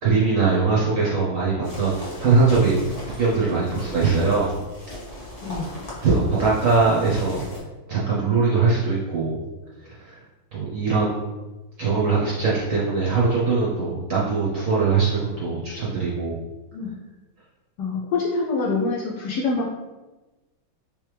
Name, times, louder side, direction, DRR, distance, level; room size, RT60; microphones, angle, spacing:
voice 1, 0.0-4.5 6.0-7.4 7.9-9.4 9.8-10.2 10.5-11.3 11.8-16.4, right 4 dB, 60° right, -6 dB, 0.8 m, -21 dB
sound 1, 1.6-7.6, left 1 dB, 35° left, 1.0 m, -38 dB
voice 2, 17.8-19.7, left 3 dB, 70° left, -2 dB, 1.1 m, -25 dB
3.4 x 3.3 x 3.2 m, 1.2 s
omnidirectional pair, 2.2 m